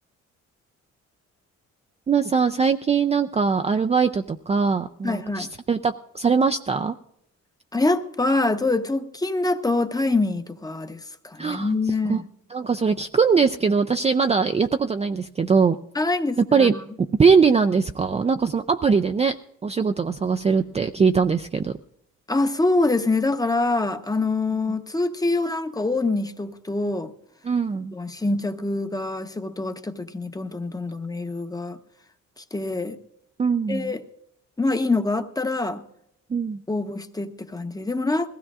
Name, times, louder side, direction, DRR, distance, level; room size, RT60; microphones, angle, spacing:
voice 1, 2.1-7.0 11.4-11.7 12.1-12.2 12.5-15.8 16.5-16.7 17.2-19.4 19.6-21.7 27.5-27.9 33.4-33.9 36.3-36.6, right 5 dB, 20° right, 0.4 m, -21 dB
voice 2, 5.0-5.5 7.7-12.3 15.9-16.9 22.3-27.1 27.9-31.8 32.4-33.0 33.7-34.0 34.6-35.8 36.7-38.3, left 2 dB, 10° left, 0.9 m, -25 dB
20.5 x 16.0 x 2.4 m
cardioid pair, 90°, 30 cm